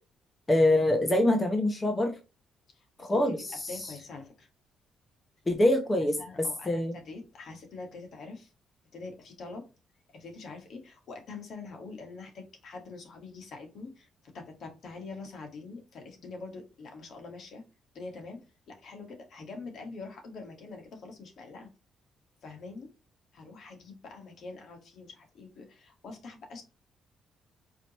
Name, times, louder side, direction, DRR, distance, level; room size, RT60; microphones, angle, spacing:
voice 1, 0.5-2.2 3.0-3.7 5.5-6.9, left 1 dB, 20° left, 4 dB, 0.9 m, -25 dB
voice 2, 2.7-4.5 6.0-8.5 8.9-9.7 10.1-17.6 17.9-18.4 18.7-21.7 22.4-22.9 23.3-26.6, left 3 dB, 60° left, 3 dB, 1.6 m, -44 dB
4.9 x 3.0 x 3.0 m, 0.29 s
cardioid pair, 90°, 0 cm